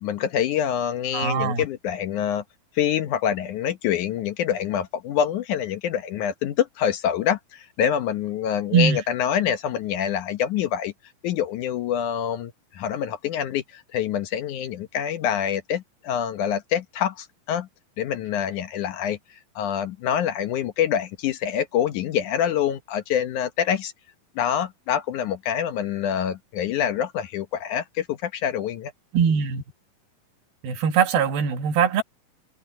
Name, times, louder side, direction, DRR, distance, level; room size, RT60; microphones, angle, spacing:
voice 1, 0.0-2.4 2.8-10.9 11.2-17.7 18.0-19.2 19.6-23.9 24.4-28.9, left 9 dB, 70° left, 2.2 m, -26 dB
voice 2, 1.1-1.6 8.7-9.0 29.1-29.6 30.6-32.0, right 7 dB, 85° right, 3.6 m, -21 dB
omnidirectional pair, 4.2 m